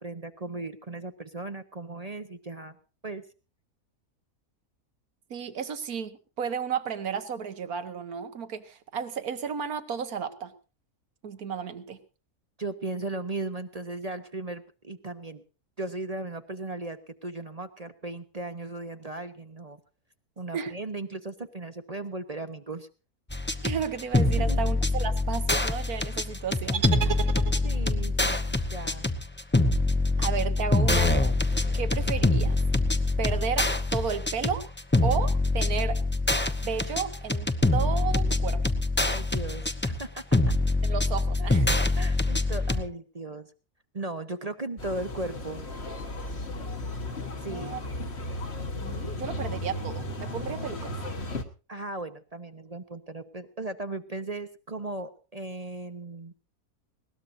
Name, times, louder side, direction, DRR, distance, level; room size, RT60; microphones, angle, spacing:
voice 1, 0.0-2.8 3.0-3.2 12.6-15.4 15.8-19.8 20.4-22.9 24.4-24.6 27.6-29.1 39.0-40.6 41.4-41.5 42.0-43.5 43.9-45.7 47.4-47.8 51.7-56.3, right 2 dB, 30° right, 9 dB, 0.8 m, -37 dB
voice 2, 5.3-10.5 11.2-12.0 20.5-20.7 23.6-27.2 30.2-31.3 31.7-32.6 33.2-33.7 33.9-34.7 35.0-36.0 36.6-38.6 40.8-41.7 47.5-47.8 48.8-50.9, right 7 dB, 75° right, 10 dB, 1.8 m, -33 dB
sound 1, 23.3-42.8, left 2 dB, 10° left, 0.7 m, -25 dB
sound 2, 26.7-28.0, right 7 dB, 50° right, 1.2 m, -32 dB
sound 3, 44.8-51.4, left 1 dB, 45° left, 1.7 m, -35 dB
20.5 x 18.5 x 2.7 m, 0.34 s
omnidirectional pair, 1.6 m